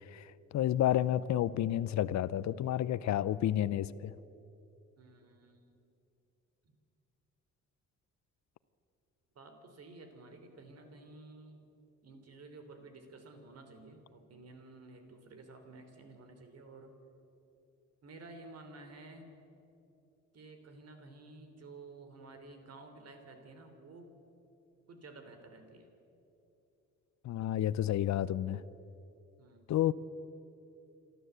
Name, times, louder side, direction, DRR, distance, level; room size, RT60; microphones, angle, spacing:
voice 1, 0.1-4.1 27.2-28.6 29.7-29.9, left 12 dB, 65° left, 17 dB, 0.7 m, -30 dB
voice 2, 5.0-5.8 9.3-11.6 12.0-16.9 18.0-19.3 20.3-24.1 24.9-25.9 29.4-29.7, right 3 dB, 55° right, 7 dB, 3.4 m, -52 dB
28.0 x 12.5 x 8.1 m, 2.8 s
cardioid pair, 90°, 30 cm